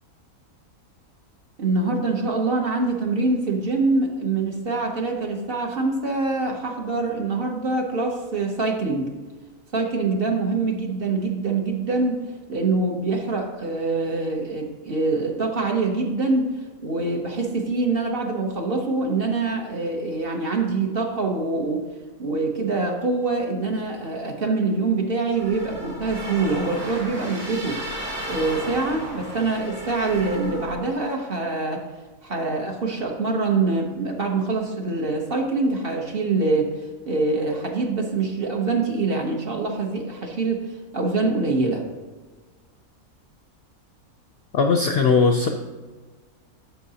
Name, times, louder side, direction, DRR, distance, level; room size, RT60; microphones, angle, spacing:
voice 1, 1.6-9.1 9.7-12.2 12.5-16.5 16.8-21.9 22.2-27.8 28.3-31.8 32.2-41.8, right 3 dB, 45° right, 1 dB, 1.0 m, -24 dB
sound 1, 25.3-30.7, right 1 dB, 80° right, 3.5 m, -34 dB
voice 2, 44.5-45.5, left 4 dB, 60° left, 3 dB, 0.6 m, -18 dB
10.0 x 6.8 x 2.8 m, 1.3 s
omnidirectional pair, 1.6 m